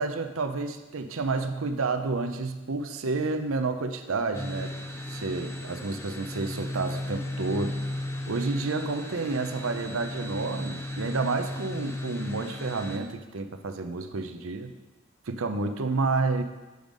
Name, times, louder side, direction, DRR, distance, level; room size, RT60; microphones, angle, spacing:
voice 1, 0.0-4.7 5.1-7.8 8.3-14.7 15.3-16.4, right 3 dB, 80° right, 8 dB, 0.6 m, -30 dB
sound 1, 4.3-13.0, left 1 dB, 15° left, 0.5 m, -35 dB
7.9 x 5.3 x 5.1 m, 1.1 s
head